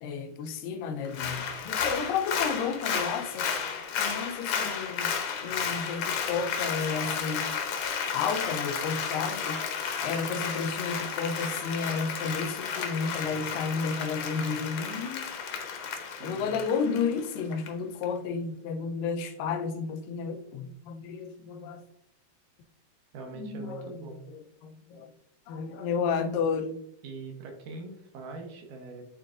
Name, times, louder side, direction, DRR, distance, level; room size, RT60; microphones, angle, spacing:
voice 1, 0.0-3.5 4.0-5.1 5.4-7.5 8.1-9.6 10.0-15.3 16.2-21.9 23.4-24.0 24.3-25.1 25.5-26.8, left 5 dB, 85° left, 6 dB, 2.4 m, -32 dB
Applause, 1.1-17.7 18.0-18.1, left 6 dB, 70° left, 2.0 m, -33 dB
voice 2, 5.4-5.7 16.2-16.5 23.1-24.2 27.0-29.0, right 3 dB, 70° right, 2 dB, 2.3 m, -42 dB
11.0 x 3.8 x 2.5 m, 0.76 s
omnidirectional pair, 3.9 m